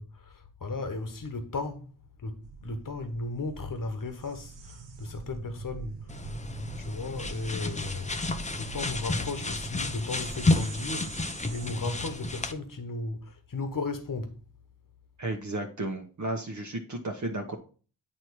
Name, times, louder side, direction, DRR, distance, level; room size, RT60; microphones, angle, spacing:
voice 1, 0.0-1.9 2.2-6.2 6.8-14.4, left 3 dB, 50° left, 1.3 m, -35 dB
sound 1, 2.4-11.7, right 4 dB, 80° right, 1.1 m, -44 dB
sound 2, 6.1-12.5, left 2 dB, 15° left, 0.6 m, -31 dB
voice 2, 15.2-17.6, right 2 dB, 40° right, 1.1 m, -33 dB
8.7 x 3.0 x 4.7 m
cardioid pair, 55°, 43 cm